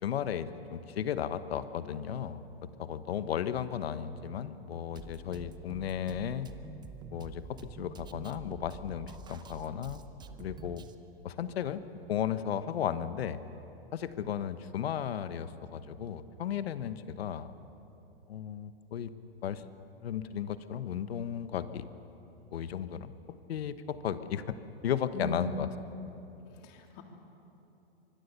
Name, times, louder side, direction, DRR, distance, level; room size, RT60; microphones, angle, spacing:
voice 1, 0.0-6.5 7.1-10.0 10.4-10.8 11.2-11.8 12.1-13.4 13.9-17.5 18.3-19.1 19.4-19.6 20.0-21.8 22.5-24.6 24.8-25.7, left 9 dB, 75° left, 12 dB, 1.2 m, -35 dB
Drum kit, 5.0-11.0, right 5 dB, 15° right, 0.8 m, -48 dB
voice 2, 25.1-25.6 26.6-27.0, left 2 dB, 45° left, 3 dB, 3.1 m, -37 dB
25.0 x 21.0 x 6.9 m, 3.0 s
hypercardioid pair, 135°, 31 cm